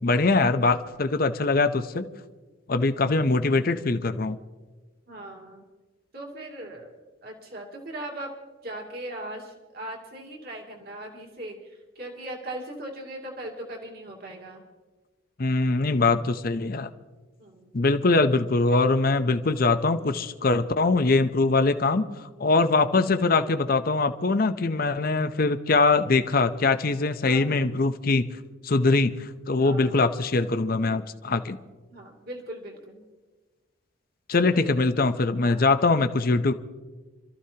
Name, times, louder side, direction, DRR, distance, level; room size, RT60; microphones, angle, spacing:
voice 1, 0.0-2.1 2.7-4.4 15.4-16.9 17.7-22.1 22.4-28.3 28.6-31.6 34.3-36.5, left 3 dB, 45° left, 10 dB, 0.7 m, -22 dB
voice 2, 5.1-5.6 6.1-6.9 7.2-8.3 8.6-14.6 17.4-17.7 27.2-27.5 29.6-30.0 31.9-33.0 34.4-34.8 35.4-35.7, right 1 dB, 50° right, 0 dB, 2.5 m, -39 dB
27.5 x 14.0 x 2.8 m, 1.3 s
head